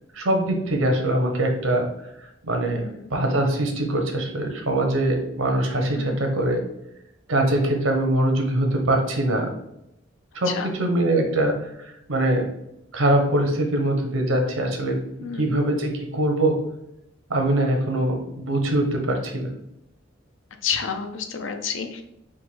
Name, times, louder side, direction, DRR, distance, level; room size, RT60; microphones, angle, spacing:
voice 1, 0.1-1.9 2.5-2.8 3.1-6.6 7.3-9.5 10.3-12.4 12.9-15.0 15.4-16.6 17.3-19.5, right 1 dB, 90° right, 3 dB, 1.0 m, -23 dB
voice 2, 2.7-3.1 6.0-6.2 10.5-10.7 15.2-15.5 20.6-22.0, left 6 dB, 70° left, 6 dB, 0.6 m, -30 dB
3.7 x 2.6 x 4.5 m, 0.81 s
head